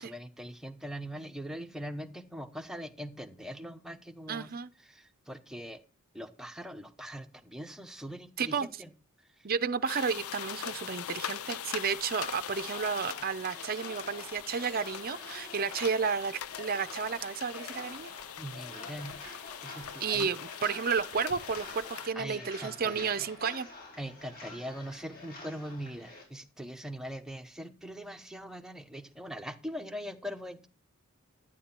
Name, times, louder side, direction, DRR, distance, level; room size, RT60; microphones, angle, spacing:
voice 1, 0.0-4.5 4.8-5.8 6.1-8.9 18.4-19.2 19.6-20.3 22.1-23.1 24.0-30.7, equal, ahead, 1.0 m, -42 dB
voice 2, 4.3-4.7 8.4-8.7 9.4-18.1 20.0-23.7, right 6 dB, 45° right, 0.6 m, -32 dB
sound 1, 9.9-22.1, left 9 dB, 80° left, 0.6 m, -42 dB
sound 2, 12.2-26.2, left 2 dB, 45° left, 5.9 m, -48 dB
11.0 x 9.6 x 4.4 m
head